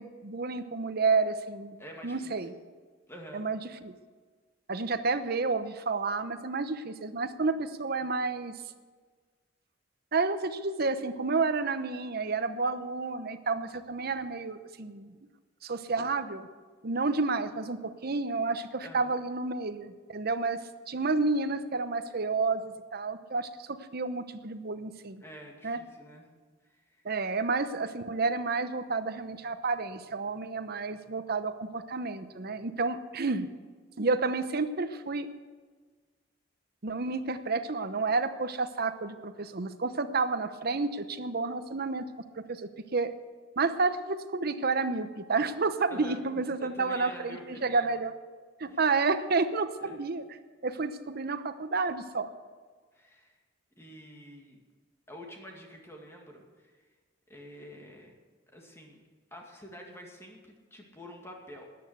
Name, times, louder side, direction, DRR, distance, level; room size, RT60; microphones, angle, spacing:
voice 1, 0.0-2.5 3.3-3.9 4.7-8.5 10.1-15.1 15.6-16.5 16.8-20.6 20.9-25.2 25.6-25.8 27.0-33.5 34.0-35.3 36.8-42.1 42.3-43.1 43.6-48.1 48.6-50.2 50.6-52.3, right 3 dB, 55° right, 10 dB, 0.9 m, -30 dB
voice 2, 1.8-2.3 3.1-3.5 18.8-19.2 25.2-26.3 26.6-27.1 45.9-47.8 48.6-48.8 49.8-50.0 52.9-53.4 53.8-54.6 55.1-56.9 57.3-58.1 58.5-59.0 59.3-61.7, equal, 15° left, 0 dB, 2.3 m, -48 dB
13.5 x 9.6 x 8.0 m, 1.5 s
head